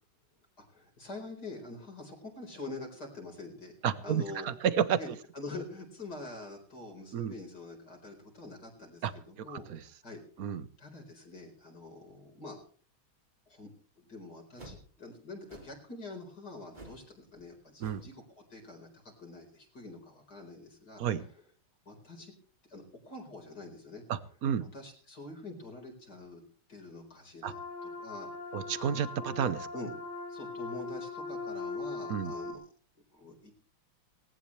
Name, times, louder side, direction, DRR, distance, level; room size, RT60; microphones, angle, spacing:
voice 1, 0.7-3.7 4.0-4.5 5.0-5.1 5.3-10.5 10.8-12.6 13.5-13.7 14.0-21.0 21.9-22.3 22.7-24.0 24.7-26.4 26.7-28.6 29.7-29.9 30.3-32.6 33.1-33.5, left 2 dB, 50° left, 1 dB, 5.1 m, -45 dB
voice 2, 3.8-5.2 7.1-7.3 9.0-9.1 9.5-9.8 10.4-10.6 17.8-18.0 21.0-21.2 24.1-24.7 27.4-27.5 28.5-29.7 32.1-32.3, right 8 dB, 50° right, 14 dB, 1.3 m, -31 dB
sound 1, 14.5-14.9 15.5-15.8 16.7-17.1 17.3-17.5 17.8-18.1, right 1 dB, 20° right, 3.0 m, -50 dB
sound 2, 27.4-32.5, left 3 dB, 85° left, 4.7 m, -40 dB
19.0 x 18.5 x 3.2 m, 0.41 s
omnidirectional pair, 2.2 m